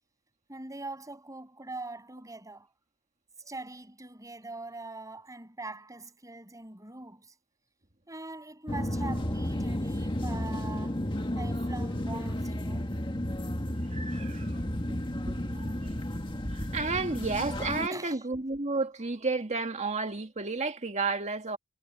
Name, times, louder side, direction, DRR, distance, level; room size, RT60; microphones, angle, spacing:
voice 1, 0.5-2.7 3.5-7.3 8.1-11.0 11.4-12.9 17.9-18.2, right 2 dB, 15° right, 7.8 m, -42 dB
sound 1, 8.7-17.9, left 1 dB, 20° left, 1.9 m, -32 dB
voice 2, 13.9-14.6 15.5-15.9 16.5-21.6, right 3 dB, 30° right, 1.9 m, -32 dB
head